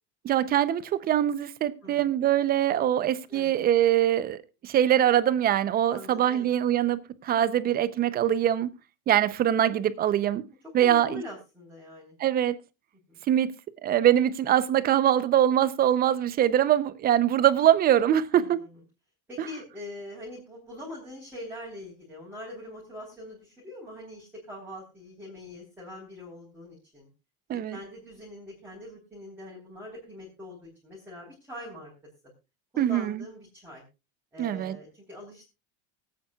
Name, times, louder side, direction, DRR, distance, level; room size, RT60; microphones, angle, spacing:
voice 1, 0.2-8.7 9.1-10.4 10.7-11.2 12.2-12.6 13.3-13.5 13.8-18.6 27.5-27.8 32.8-33.2 34.4-34.8, right 11 dB, 20° right, 0.6 m, -23 dB
voice 2, 1.8-2.2 3.3-3.5 5.8-6.5 10.8-12.2 13.1-13.2 18.3-18.8 19.3-27.1 27.7-31.9 32.7-33.8 34.3-35.5, left 1 dB, 5° right, 3.8 m, -43 dB
24.5 x 8.7 x 2.3 m
supercardioid pair, 155°, 42 cm